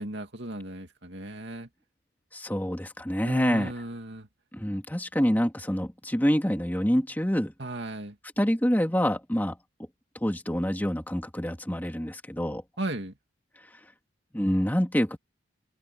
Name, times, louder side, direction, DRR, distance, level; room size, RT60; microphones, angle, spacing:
voice 1, 0.0-1.7 3.2-4.3 7.6-8.2 12.8-13.1, right 1 dB, 60° right, 2.7 m, -36 dB
voice 2, 2.3-3.7 4.5-7.5 8.4-9.6 10.2-12.6 14.3-15.2, equal, 10° left, 2.4 m, -26 dB
open air
head